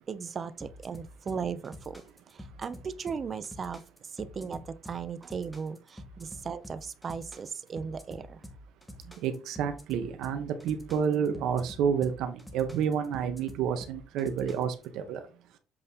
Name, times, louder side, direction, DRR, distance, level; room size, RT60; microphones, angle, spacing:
voice 1, 0.1-2.0 2.3-3.8 4.1-8.4, right 6 dB, 30° right, 0.6 m, -37 dB
sound 1, 0.6-14.9, left 1 dB, 5° left, 1.3 m, -48 dB
voice 2, 9.0-15.3, right 7 dB, 70° right, 1.1 m, -30 dB
7.8 x 4.2 x 3.7 m
cardioid pair, 150°, 0 cm